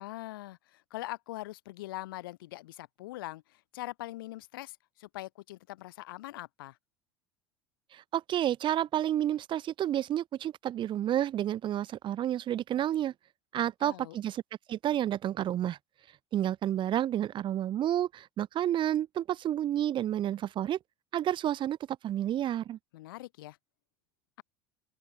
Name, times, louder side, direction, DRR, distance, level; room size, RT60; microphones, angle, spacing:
voice 1, 0.0-6.8 13.6-14.2 22.9-23.6, left 17 dB, 70° left, 5.6 m, -42 dB
voice 2, 7.9-13.1 13.5-14.4 14.7-15.8 16.3-20.8 21.1-21.8 22.0-22.8, right 11 dB, 40° right, 1.6 m, -30 dB
open air
figure-of-eight pair, 70°, 12 cm